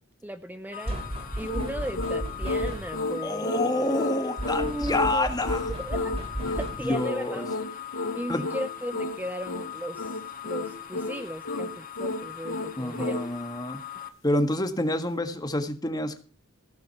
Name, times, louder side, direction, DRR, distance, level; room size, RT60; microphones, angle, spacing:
voice 1, 0.2-1.0 1.4-3.6 4.4-6.2 6.6-7.6 8.1-13.3, equal, 10° right, 9 dB, 0.6 m, -36 dB
sound 1, 0.7-14.1, left 10 dB, 45° left, 1.3 m, -41 dB
sound 2, 0.9-3.1 4.4-7.0, right 1 dB, 30° right, 2.9 m, -34 dB
sound 3, 1.4-13.3, left 2 dB, 90° left, 0.9 m, -32 dB
voice 2, 3.2-5.7 6.5-6.6 6.8-7.4 8.3-8.4 12.8-13.8 14.2-16.2, left 1 dB, 20° left, 8 dB, 1.5 m, -28 dB
16.0 x 7.6 x 5.8 m, 0.38 s
head